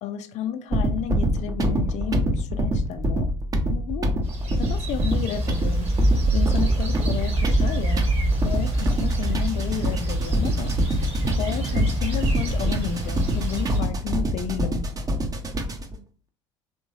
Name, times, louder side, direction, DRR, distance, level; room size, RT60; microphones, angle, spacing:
voice 1, 0.0-3.3 3.7-4.1 4.6-5.9 6.3-8.1 8.4-10.7 11.3-14.8, left 9 dB, 50° left, 0.4 m, -32 dB
sound 1, 0.7-16.0, equal, 25° right, 0.6 m, -26 dB
sound 2, 4.2-13.8, right 1 dB, 40° right, 1.3 m, -25 dB
2.9 x 2.8 x 2.7 m
figure-of-eight pair, 60°, 16 cm